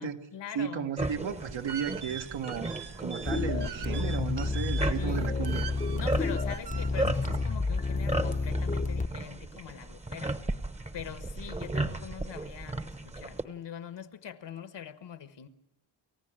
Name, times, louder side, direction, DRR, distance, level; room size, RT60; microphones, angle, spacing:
voice 1, 0.0-0.9 5.0-5.5 6.0-10.4 10.9-15.5, left 8 dB, 65° left, 1.4 m, -43 dB
voice 2, 0.5-2.7 3.0-5.7, right 7 dB, 75° right, 1.7 m, -34 dB
sound 1, 1.0-13.4, right 2 dB, 15° right, 1.0 m, -36 dB
sound 2, 1.3-7.5, right 8 dB, 60° right, 0.9 m, -43 dB
sound 3, 3.3-9.1, left 3 dB, 15° left, 0.7 m, -30 dB
29.5 x 15.0 x 8.9 m
wide cardioid pair, 120°, 46 cm